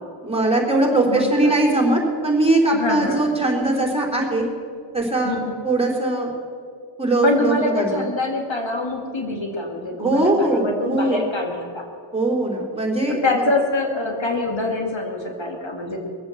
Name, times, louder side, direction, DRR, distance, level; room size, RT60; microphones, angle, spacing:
voice 1, 0.2-4.5 4.9-5.4 5.6-6.3 7.0-8.1 10.0-11.2 12.1-13.4, right 2 dB, 15° right, -1 dB, 3.5 m, -20 dB
voice 2, 1.1-1.5 2.7-3.2 5.2-5.5 7.2-11.8 13.1-16.0, left 2 dB, 85° left, 1 dB, 2.2 m, -25 dB
20.0 x 8.0 x 7.7 m, 2.2 s
wide cardioid pair, 45°, 44 cm